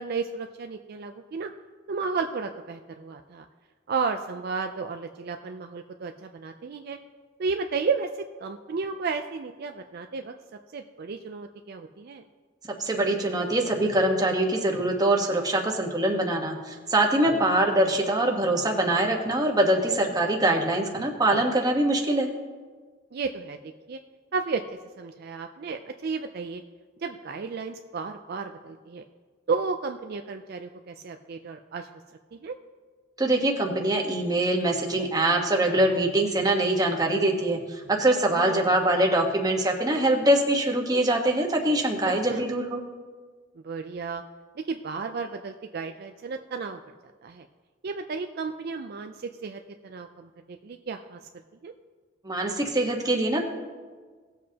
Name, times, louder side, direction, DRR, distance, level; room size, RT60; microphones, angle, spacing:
voice 1, 0.0-1.5 1.9-3.4 3.9-7.0 7.4-10.3 10.7-12.2 17.2-17.5 23.1-23.6 23.9-24.0 24.3-24.6 25.0-26.6 27.0-29.0 29.5-31.9 32.3-32.6 38.3-38.7 42.0-42.4 43.6-44.2 44.6-46.8 47.2-47.5 47.8-51.3 51.6-51.7, right 4 dB, 55° right, 6 dB, 0.4 m, -33 dB
voice 2, 12.8-22.3 33.2-42.8 52.2-53.4, right 1 dB, 20° right, 1 dB, 1.2 m, -23 dB
18.0 x 7.4 x 2.9 m, 1.5 s
head